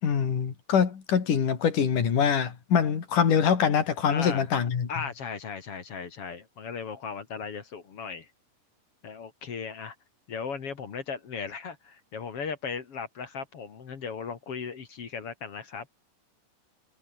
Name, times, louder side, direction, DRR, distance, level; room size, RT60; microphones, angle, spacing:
voice 1, 0.0-4.9, left 7 dB, 65° left, 4.6 m, -24 dB
voice 2, 4.1-4.5 4.9-8.3 9.0-10.0 10.3-15.9, left 5 dB, 45° left, 2.7 m, -37 dB
omnidirectional pair, 4.0 m